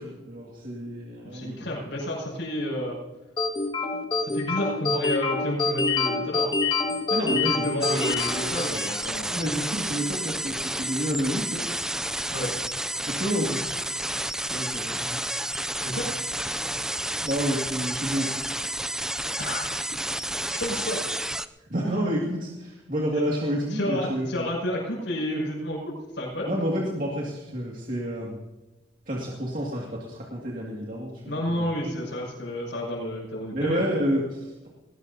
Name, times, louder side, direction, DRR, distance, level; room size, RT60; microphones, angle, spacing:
voice 1, 0.0-1.6 7.1-7.7 9.3-11.7 13.1-13.7 14.5-15.2 17.2-18.7 21.7-24.5 26.4-28.4 29.1-31.7 33.5-34.7, equal, 45° right, -3 dB, 2.3 m, -29 dB
voice 2, 1.2-3.0 4.2-6.5 7.2-9.5 12.3-12.5 15.8-16.1 19.4-19.7 20.6-21.0 23.7-26.6 31.3-33.9, left 1 dB, 75° left, -5 dB, 6.5 m, -30 dB
sound 1, 3.4-9.1, left 4 dB, 25° left, 1.9 m, -26 dB
sound 2, 7.8-21.5, right 1 dB, 5° right, 0.4 m, -30 dB
20.5 x 18.5 x 2.8 m, 1.1 s
head